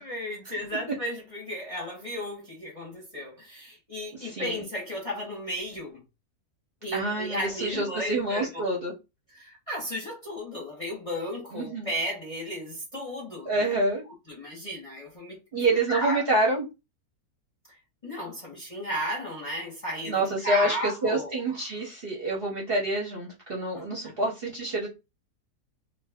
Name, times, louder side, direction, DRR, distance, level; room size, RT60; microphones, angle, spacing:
voice 1, 0.0-6.0 6.8-8.5 9.3-13.8 14.3-15.4 15.7-16.3 17.7-17.8 18.0-21.6 23.7-24.1, equal, 30° left, 0.8 m, -34 dB
voice 2, 4.2-4.6 6.9-8.9 11.5-11.9 13.5-14.0 15.5-16.6 20.1-24.9, right 2 dB, 50° right, 0.8 m, -27 dB
2.6 x 2.3 x 3.4 m
omnidirectional pair, 1.7 m